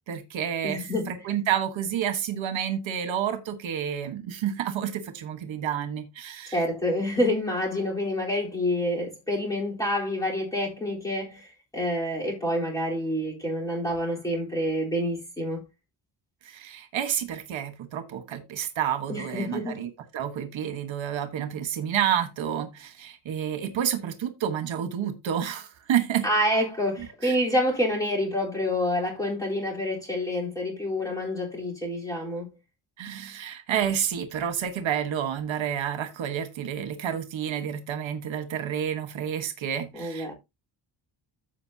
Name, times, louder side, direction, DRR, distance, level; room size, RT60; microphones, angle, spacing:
voice 1, 0.1-6.6 16.4-26.2 27.2-27.4 33.0-40.3, right 9 dB, 75° right, 1.5 m, -29 dB
voice 2, 0.6-1.1 6.5-15.6 19.1-19.8 26.2-32.5 39.9-40.3, left 1 dB, 5° left, 3.8 m, -27 dB
14.5 x 5.3 x 2.8 m
wide cardioid pair, 180°, 47 cm